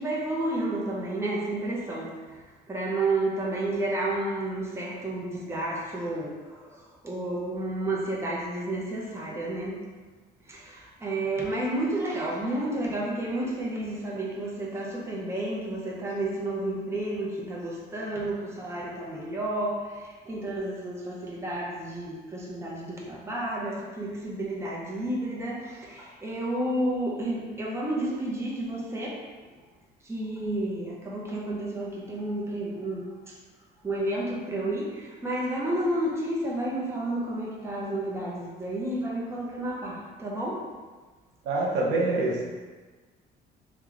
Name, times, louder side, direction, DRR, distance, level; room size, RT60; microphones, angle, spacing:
voice 1, 0.0-2.1 2.7-6.7 7.0-9.8 10.5-19.8 20.3-29.2 30.1-33.0 33.8-40.6, right 1 dB, 15° right, -4 dB, 0.7 m, -31 dB
voice 2, 41.5-42.5, right 2 dB, 85° right, -3 dB, 0.7 m, -25 dB
3.0 x 2.3 x 3.8 m, 1.4 s
cardioid pair, 110°, 17 cm